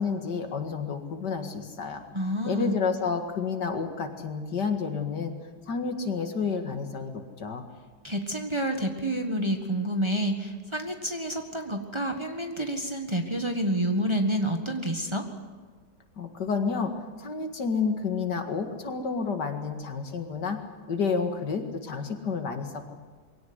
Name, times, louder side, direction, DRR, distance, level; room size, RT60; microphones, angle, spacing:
voice 1, 0.0-2.0 2.4-5.4 5.7-7.1 7.4-7.6 16.2-20.6 20.9-22.9, left 5 dB, 75° left, 6 dB, 2.5 m, -30 dB
voice 2, 2.1-2.8 8.0-15.2, right 1 dB, 15° right, 4 dB, 1.5 m, -29 dB
22.5 x 17.0 x 9.6 m, 1.4 s
omnidirectional pair, 1.9 m